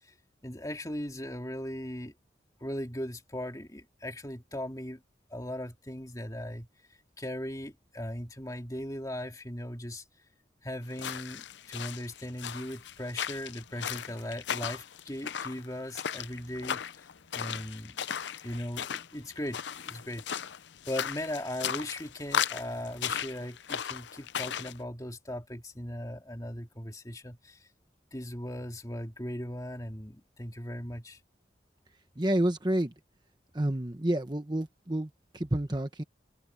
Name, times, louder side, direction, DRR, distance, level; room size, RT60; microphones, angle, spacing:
voice 1, 0.4-2.1 2.6-5.0 5.3-6.7 7.2-10.0 10.6-16.8 17.3-18.0 18.4-20.2 20.9-27.6 28.1-31.2, left 1 dB, 20° left, 2.6 m, -38 dB
sound 1, 10.9-24.8, left 8 dB, 80° left, 0.6 m, -36 dB
voice 2, 32.2-32.9 33.5-36.0, right 1 dB, 25° right, 1.0 m, -29 dB
open air
head